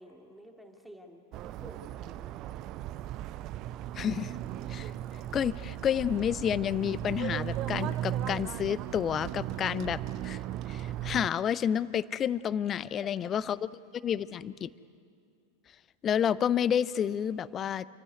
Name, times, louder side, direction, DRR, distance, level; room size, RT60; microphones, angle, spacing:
voice 1, 0.0-2.6 13.0-13.3, equal, ahead, 3 dB, 2.2 m, -52 dB
sound 1, 1.3-11.3, right 12 dB, 35° right, 0.5 m, -37 dB
voice 2, 3.9-4.3 4.7-4.9 5.3-10.4 10.7-13.6 14.0-14.7 16.0-17.9, left 9 dB, 25° left, 19 dB, 0.5 m, -30 dB
27.5 x 15.5 x 9.7 m, 2.4 s
figure-of-eight pair, 90°, 0 cm